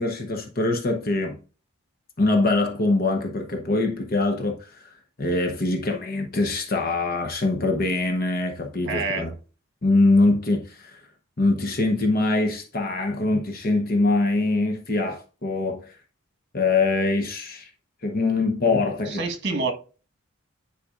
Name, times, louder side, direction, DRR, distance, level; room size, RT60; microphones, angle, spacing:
voice 1, 0.0-1.4 2.2-9.3 9.8-11.0 11.4-15.9 16.5-17.7 18.0-19.2 19.5-19.6, left 2 dB, 45° left, 0.9 m, -23 dB
voice 2, 8.9-9.3 19.1-19.7, right 3 dB, 55° right, 1.3 m, -27 dB
9.9 x 4.8 x 2.5 m
head